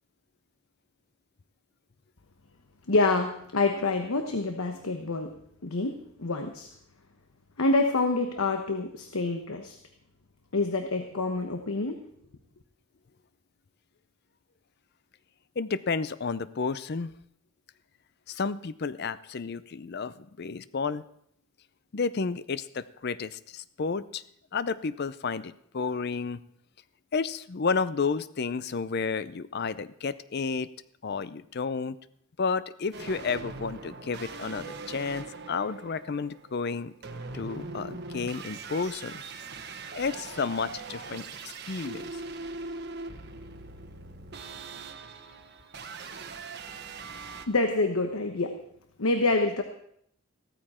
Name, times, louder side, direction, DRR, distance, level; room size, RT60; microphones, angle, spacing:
voice 1, 2.9-5.3 5.6-6.7 7.6-9.7 10.5-12.0 47.5-48.5 49.0-49.6, left 3 dB, 85° left, 6 dB, 1.0 m, -27 dB
voice 2, 15.6-17.1 18.3-21.0 21.9-24.2 24.5-26.4 27.1-30.7 31.0-32.0 32.4-39.2 39.9-41.2 41.7-42.1, left 5 dB, 50° left, 16 dB, 0.5 m, -31 dB
sound 1, 32.9-47.5, right 3 dB, 50° right, 1.1 m, -41 dB
15.0 x 13.5 x 4.3 m, 0.69 s
head